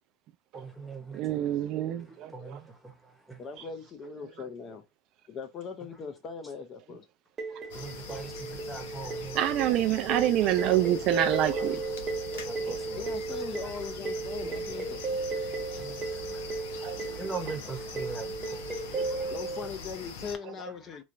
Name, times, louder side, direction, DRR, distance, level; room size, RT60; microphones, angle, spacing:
voice 1, 0.5-1.2 2.3-3.4 7.6-9.4 12.0-13.1 14.4-14.6 15.7-19.3, right 3 dB, ahead, 0.9 m, -42 dB
voice 2, 1.1-2.6 9.3-11.8 12.7-12.8 16.8-17.2 18.9-19.3, right 12 dB, 50° right, 0.3 m, -27 dB
voice 3, 3.4-4.9 5.3-7.1 12.9-15.0 19.3-21.0, left 5 dB, 35° left, 0.5 m, -40 dB
sound 1, 7.4-19.7, right 3 dB, 25° right, 0.9 m, -35 dB
sound 2, 7.7-20.3, left 4 dB, 75° left, 0.8 m, -43 dB
3.0 x 2.3 x 2.5 m
supercardioid pair, 115°, 0 cm